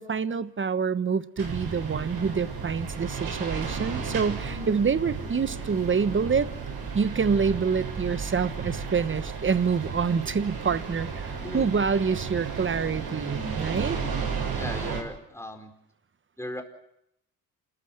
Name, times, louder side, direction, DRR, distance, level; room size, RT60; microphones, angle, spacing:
voice 1, 0.0-6.5 6.9-14.0, right 5 dB, 30° right, 14 dB, 1.2 m, -26 dB
sound 1, 1.4-15.0, right 5 dB, 70° right, 7.4 m, -33 dB
voice 2, 11.3-11.7 14.5-15.7 16.4-16.6, left 1 dB, 5° left, 4 dB, 4.7 m, -37 dB
28.0 x 14.0 x 9.1 m, 0.79 s
supercardioid pair, 75°, 38 cm